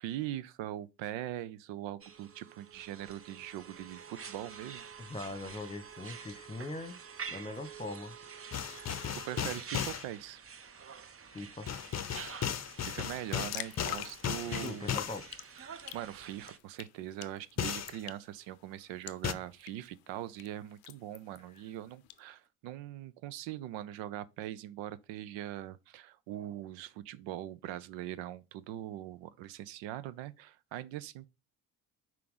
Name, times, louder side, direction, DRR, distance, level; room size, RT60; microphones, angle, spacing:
voice 1, 0.0-5.1 8.7-8.9 9.2-10.4 12.4-14.9 15.6-31.3, right 13 dB, 70° right, 0.6 m, -42 dB
sound 1, 2.0-16.6, right 6 dB, 30° right, 0.8 m, -48 dB
voice 2, 5.0-7.0 7.3-8.1 11.3-11.7 14.6-15.2, left 2 dB, 15° left, 1.2 m, -41 dB
sound 2, 8.5-10.1 11.7-15.3 17.6-18.0 19.2-19.3, left 9 dB, 35° left, 0.7 m, -35 dB
sound 3, 13.0-22.2, left 15 dB, 80° left, 0.6 m, -48 dB
5.9 x 4.6 x 3.8 m
hypercardioid pair, 45°, 47 cm